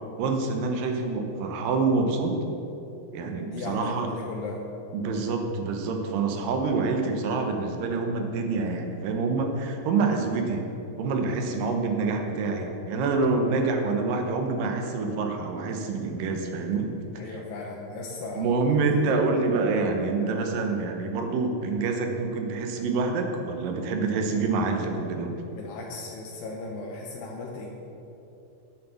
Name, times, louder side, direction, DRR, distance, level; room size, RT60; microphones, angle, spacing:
voice 1, 0.2-2.4 3.1-4.1 4.9-10.6 11.0-16.9 17.3-17.4 18.4-25.3, right 4 dB, 75° right, 4 dB, 2.6 m, -26 dB
voice 2, 3.4-4.6 17.2-18.8 25.5-27.7, left 3 dB, 80° left, -2 dB, 2.6 m, -37 dB
9.3 x 7.1 x 6.9 m, 2.9 s
omnidirectional pair, 4.0 m